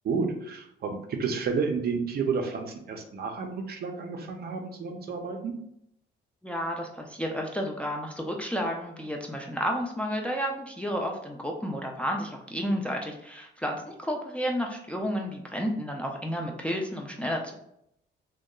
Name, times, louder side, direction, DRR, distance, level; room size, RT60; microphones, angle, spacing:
voice 1, 0.0-5.5, right 5 dB, 55° right, 4 dB, 0.5 m, -31 dB
voice 2, 6.4-17.6, equal, 5° left, 1 dB, 0.3 m, -31 dB
2.7 x 2.2 x 2.2 m, 0.75 s
cardioid pair, 90°, 20 cm